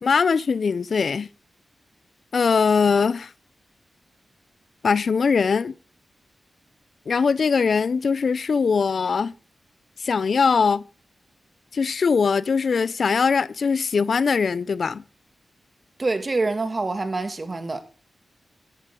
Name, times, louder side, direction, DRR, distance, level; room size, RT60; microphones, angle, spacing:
voice 1, 0.0-1.3 2.3-3.3 4.8-5.7 7.1-9.3 10.0-10.8 11.7-15.0, left 5 dB, 65° left, 0.4 m, -21 dB
voice 2, 16.0-17.9, right 3 dB, 35° right, 2.1 m, -26 dB
12.5 x 11.5 x 3.7 m
cardioid pair, 70°, 0 cm